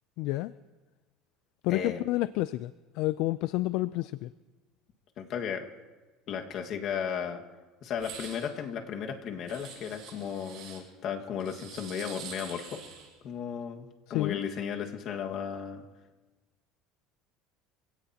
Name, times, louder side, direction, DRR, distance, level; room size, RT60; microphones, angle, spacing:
voice 1, 0.2-0.5 1.6-2.7 3.0-4.3 14.1-14.4, left 18 dB, 65° left, 15 dB, 0.4 m, -29 dB
voice 2, 1.7-2.0 5.2-5.7 6.3-7.4 7.8-12.8 13.2-15.8, left 7 dB, 50° left, 3 dB, 1.7 m, -35 dB
sound 1, 7.9-8.5 9.5-10.8 11.4-13.1, right 7 dB, 55° right, 6.8 m, -46 dB
27.0 x 17.0 x 2.9 m, 1.3 s
cardioid pair, 130°, 0 cm